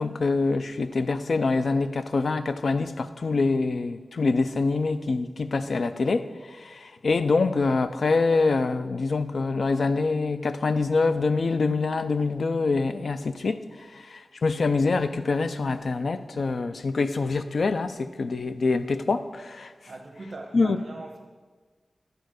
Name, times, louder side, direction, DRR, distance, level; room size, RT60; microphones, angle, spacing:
voice 1, 0.0-19.7 20.5-20.8, left 3 dB, 70° left, 0.4 m, -25 dB
voice 2, 19.9-21.2, right 2 dB, 55° right, 1.1 m, -40 dB
11.5 x 4.6 x 6.4 m
wide cardioid pair, 100°, 0 cm